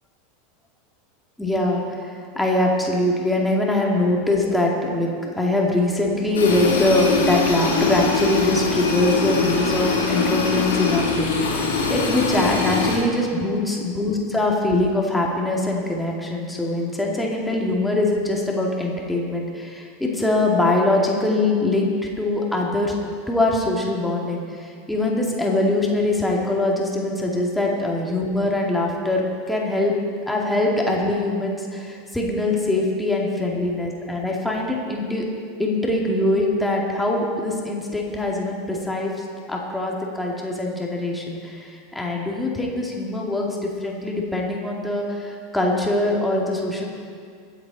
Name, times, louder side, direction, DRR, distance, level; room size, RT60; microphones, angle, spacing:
voice 1, 1.4-23.0 23.3-29.9 30.3-35.3 35.6-46.9, left 2 dB, 5° left, -2 dB, 2.5 m, -23 dB
sound 1, 6.3-13.0, left 4 dB, 70° left, 3.2 m, -22 dB
22.0 x 8.2 x 4.2 m, 2.2 s
figure-of-eight pair, 85°, 0 cm